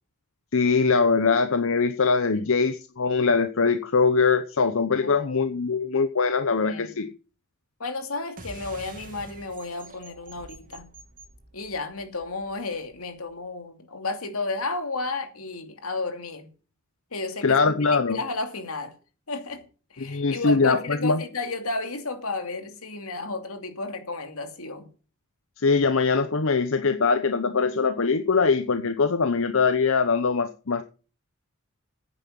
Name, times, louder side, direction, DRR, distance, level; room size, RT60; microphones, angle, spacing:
voice 1, 0.5-7.1 17.4-18.2 20.0-21.2 25.6-30.8, left 4 dB, 65° left, 0.9 m, -22 dB
voice 2, 6.6-7.0 7.8-10.9 11.5-16.5 17.1-18.9 19.3-19.6 19.9-24.9, left 3 dB, 90° left, 2.6 m, -33 dB
sound 1, 8.4-13.3, right 2 dB, 40° right, 2.3 m, -47 dB
9.8 x 9.1 x 7.5 m
head